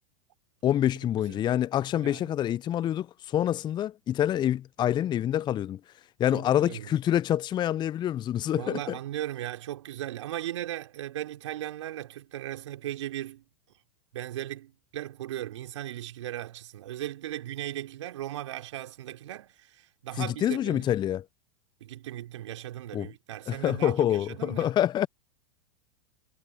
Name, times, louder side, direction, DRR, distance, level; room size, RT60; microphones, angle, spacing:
voice 1, 0.6-5.8 6.2-9.0 20.2-21.2 22.9-23.1 23.5-25.1, left 11 dB, 25° left, 0.6 m, -26 dB
voice 2, 2.0-2.3 6.3-6.9 8.5-13.4 14.1-21.0 21.8-24.7, right 13 dB, 65° right, 3.3 m, -37 dB
figure-of-eight pair, 90°, 16 cm